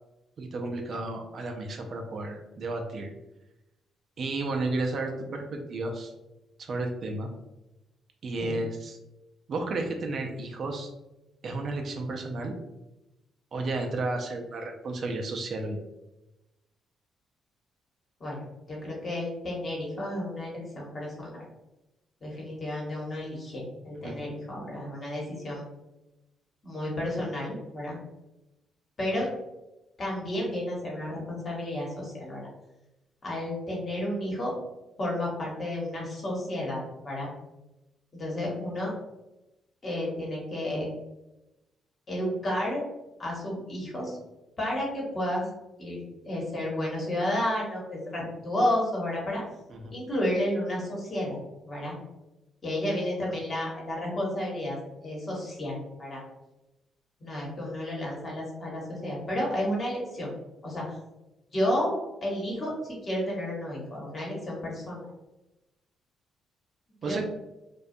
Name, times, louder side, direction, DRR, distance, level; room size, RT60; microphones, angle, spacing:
voice 1, 0.4-3.1 4.2-6.1 6.6-7.3 8.2-9.0 9.5-10.9 11.4-12.5 13.5-15.8 24.0-24.1 49.7-49.9 67.0-67.2, right 2 dB, 55° right, 3 dB, 0.4 m, -32 dB
voice 2, 18.2-21.4 22.2-25.7 26.6-28.0 29.0-29.3 30.0-32.5 33.2-34.5 35.0-37.3 38.1-38.9 39.8-40.9 42.1-42.8 43.2-44.2 44.6-45.5 45.8-49.4 49.9-51.4 51.7-52.0 52.6-56.2 57.2-60.3 60.6-61.0 61.5-61.9 62.2-65.1 67.0-67.2, left 1 dB, 40° left, -3 dB, 1.0 m, -31 dB
2.3 x 2.2 x 2.6 m, 0.98 s
cardioid pair, 90°, 0 cm